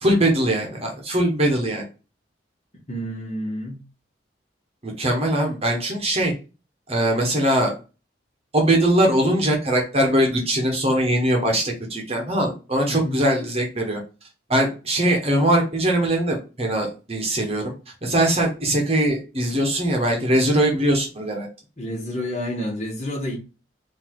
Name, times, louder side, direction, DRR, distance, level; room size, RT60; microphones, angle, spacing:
voice 1, 0.0-1.8 4.8-6.3 6.9-7.7 8.5-14.0 14.5-17.7 18.0-21.5, right 1 dB, 35° right, 1.1 m, -21 dB
voice 2, 2.9-3.8 12.9-13.2 21.8-23.4, equal, 40° left, 1.6 m, -29 dB
4.0 x 2.8 x 4.5 m
head